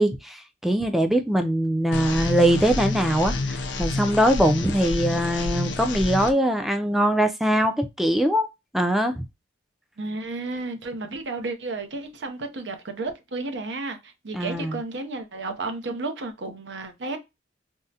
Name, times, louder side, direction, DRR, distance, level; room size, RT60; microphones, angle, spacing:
voice 1, 0.0-8.5 8.7-9.3 14.3-14.8, equal, ahead, 0.3 m, -22 dB
sound 1, 1.9-6.3, left 3 dB, 75° left, 0.5 m, -29 dB
voice 2, 10.0-17.2, right 3 dB, 75° right, 0.6 m, -32 dB
3.5 x 2.1 x 2.7 m
head